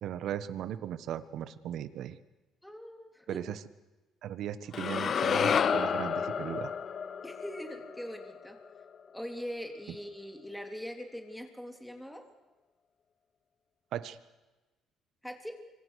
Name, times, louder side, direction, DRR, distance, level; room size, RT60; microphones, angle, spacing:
voice 1, 0.0-2.2 3.3-3.6 4.2-6.7 13.9-14.2, right 10 dB, 70° right, 13 dB, 1.4 m, -37 dB
voice 2, 2.6-3.4 7.2-8.6 9.1-12.2 15.2-15.6, equal, 5° left, 4 dB, 3.6 m, -42 dB
sound 1, 4.7-9.0, left 7 dB, 50° left, 1.0 m, -31 dB
26.5 x 24.5 x 6.6 m, 1.2 s
cardioid pair, 85°, 0 cm